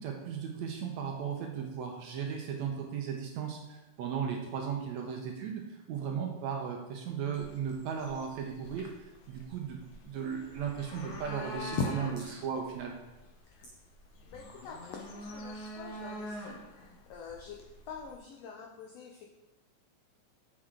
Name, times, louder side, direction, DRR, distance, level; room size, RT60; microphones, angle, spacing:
voice 1, 0.0-8.9 9.3-12.9, right 7 dB, 75° right, 1 dB, 1.7 m, -36 dB
sound 1, 7.3-18.2, left 1 dB, 70° left, 2.2 m, -46 dB
voice 2, 14.3-16.6 17.1-17.6 17.9-19.3, left 5 dB, 90° left, 0 dB, 1.4 m, -46 dB
7.4 x 6.2 x 3.7 m, 1.1 s
omnidirectional pair, 3.8 m